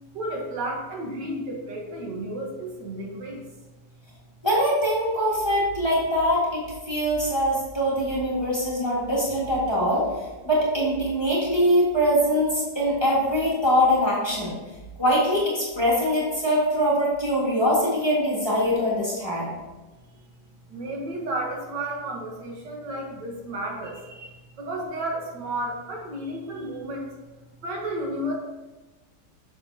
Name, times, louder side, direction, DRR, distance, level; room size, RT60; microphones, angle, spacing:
voice 1, 0.1-3.4 20.7-27.1 27.6-28.4, right 1 dB, 75° right, -1 dB, 1.9 m, -32 dB
voice 2, 4.4-10.1 10.4-14.5 15.0-19.5, equal, 15° left, -7 dB, 1.8 m, -23 dB
7.1 x 6.8 x 2.8 m, 1.1 s
omnidirectional pair, 1.9 m